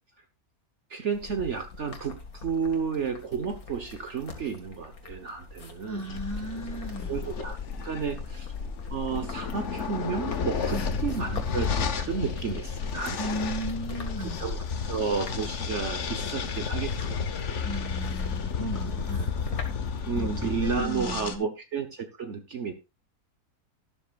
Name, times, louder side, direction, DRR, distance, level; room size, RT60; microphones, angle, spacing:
voice 1, 0.9-6.1 7.1-7.6 7.8-8.5 8.9-13.5 14.2-17.3 20.0-22.7, right 6 dB, 50° right, 7 dB, 1.4 m, -32 dB
sound 1, 1.1-20.7, left 3 dB, 70° left, 2.4 m, -46 dB
voice 2, 5.9-7.2 10.7-10.9 13.2-14.5 17.6-19.3 20.1-21.5, right 1 dB, 10° left, 4 dB, 2.2 m, -36 dB
sound 2, 6.1-21.4, left 5 dB, 55° left, 1.3 m, -32 dB
12.5 x 12.0 x 2.4 m, 0.25 s
omnidirectional pair, 1.6 m